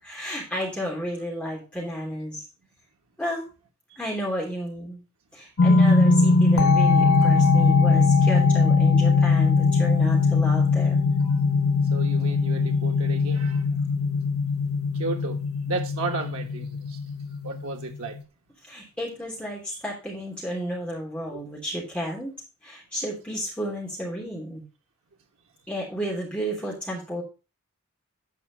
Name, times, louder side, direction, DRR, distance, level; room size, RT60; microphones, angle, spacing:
voice 1, 0.0-2.5 3.2-3.4 3.9-5.0 5.3-11.0 18.6-22.3 22.6-24.6 25.7-27.2, equal, 5° left, 3.2 m, -32 dB
sound 1, 5.6-18.2, left 4 dB, 75° left, 0.7 m, -20 dB
voice 2, 7.1-7.6 11.2-11.4 11.9-13.6 14.9-15.4 15.7-17.0 17.4-18.2 21.3-21.4, right 3 dB, 90° right, 1.3 m, -34 dB
10.0 x 4.9 x 5.4 m
head